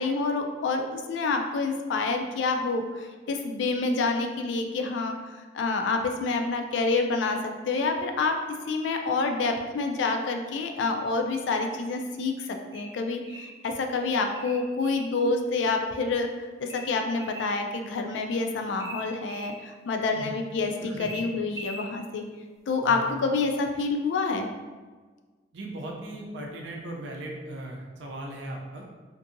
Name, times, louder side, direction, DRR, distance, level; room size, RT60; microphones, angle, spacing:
voice 1, 0.0-7.4 7.7-8.3 8.7-16.3 16.6-22.2 22.7-24.5, left 3 dB, 80° left, 4 dB, 0.3 m, -28 dB
sound 1, 12.7-13.6 14.4-15.1 16.7-17.6 18.8-19.6 21.0-21.9, equal, 20° right, 0.4 m, -41 dB
voice 2, 20.1-20.4 20.8-21.1 22.8-23.0 25.5-28.8, right 1 dB, 80° right, 0 dB, 0.5 m, -38 dB
2.6 x 2.6 x 2.5 m, 1.4 s
head